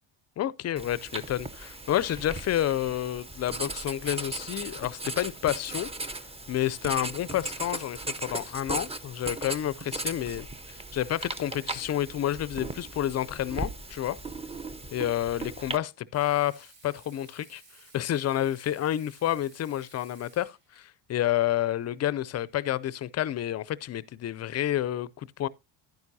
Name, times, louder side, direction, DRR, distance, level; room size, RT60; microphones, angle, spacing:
voice 1, 0.4-5.9 6.5-14.2 14.9-17.6 17.9-25.5, left 12 dB, 35° left, 0.4 m, -29 dB
Writing, 0.8-15.8, right 2 dB, 15° right, 0.6 m, -37 dB
Water tap faucet / Sink (filling or washing), 16.1-20.8 22.4-22.5, right 3 dB, 75° right, 3.1 m, -56 dB
10.5 x 9.5 x 2.7 m
supercardioid pair, 95°, 46 cm